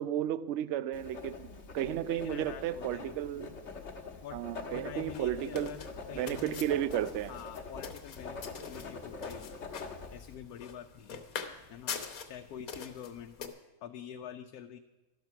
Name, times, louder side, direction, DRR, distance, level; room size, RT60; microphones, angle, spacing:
voice 1, 0.0-3.5 4.3-5.7 6.1-7.3, right 11 dB, 65° right, 16 dB, 0.7 m, -33 dB
Writing, 0.9-10.3, left 4 dB, 50° left, 1.5 m, -44 dB
voice 2, 2.1-3.6 4.2-4.4 4.7-6.7 7.3-9.5 10.1-11.3 11.7-12.0 12.2-13.5 13.8-14.8, left 9 dB, 90° left, 6 dB, 1.1 m, -46 dB
sound 1, 4.7-13.5, left 6 dB, 70° left, 1.5 m, -45 dB
13.0 x 12.0 x 5.8 m, 1.1 s
omnidirectional pair, 1.6 m